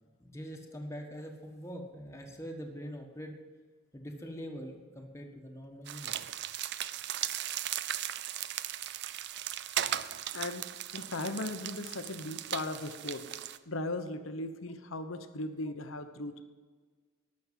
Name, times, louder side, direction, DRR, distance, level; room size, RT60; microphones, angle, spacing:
voice 1, 0.2-3.3 3.9-6.2, equal, 15° left, 2 dB, 1.5 m, -43 dB
sound 1, 5.9-13.6, right 11 dB, 55° right, 0.5 m, -37 dB
voice 2, 10.3-10.7 10.9-13.3 13.7-16.4, left 2 dB, 75° left, 9 dB, 1.1 m, -37 dB
13.0 x 6.5 x 9.2 m, 1.5 s
head